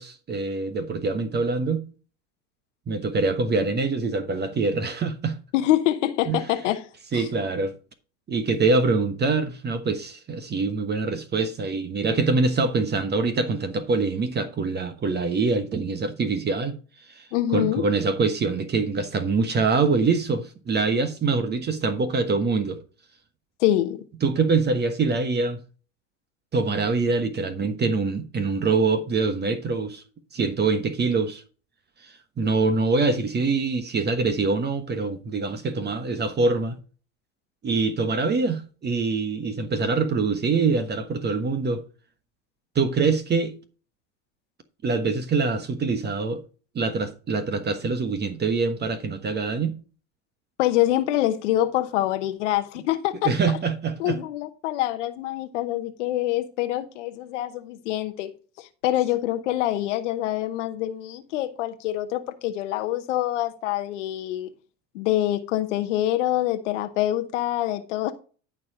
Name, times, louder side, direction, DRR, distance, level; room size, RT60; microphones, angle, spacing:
voice 1, 0.0-1.8 2.9-5.4 6.3-6.4 7.1-7.7 8.3-16.7 17.1-22.8 24.2-25.6 26.5-30.0 30.3-31.4 32.0-36.8 37.6-41.8 42.7-43.5 44.8-46.4 46.7-49.7 53.2-54.2, right 4 dB, 30° right, 1.2 m, -24 dB
voice 2, 5.5-6.9 7.1-7.3 17.3-17.8 23.6-24.0 50.6-53.3 54.0-58.3 58.6-64.5 64.9-68.1, left 14 dB, 80° left, 1.0 m, -25 dB
12.0 x 4.7 x 4.9 m
hypercardioid pair, 95°, 36 cm